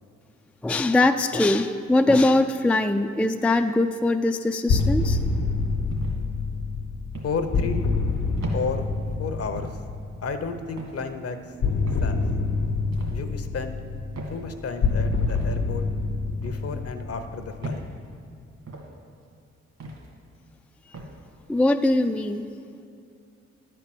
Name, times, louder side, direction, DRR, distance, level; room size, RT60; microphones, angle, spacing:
voice 1, 0.6-5.2 21.5-22.5, left 2 dB, 5° left, 6 dB, 0.3 m, -21 dB
sound 1, 4.7-10.4 11.6-17.9, left 3 dB, 90° left, 1.2 m, -26 dB
sound 2, 4.8-5.2 5.9-6.2 7.1-7.4 8.4-8.6 9.6-9.8 10.8-11.0 11.9-12.1 12.9-13.2 14.1-14.4 15.3-15.5 16.4-16.6 17.6-17.9 18.7-18.9 19.8-20.1 20.9-21.1, right 2 dB, 65° right, 2.0 m, -37 dB
voice 2, 7.2-7.9 8.5-8.9 9.2-9.7 10.2-11.4 12.0-12.2 13.1-13.7 14.3-15.8 16.4-17.8, left 4 dB, 55° left, 8 dB, 0.8 m, -32 dB
10.5 x 4.5 x 7.7 m, 2.4 s
cardioid pair, 65°, 29 cm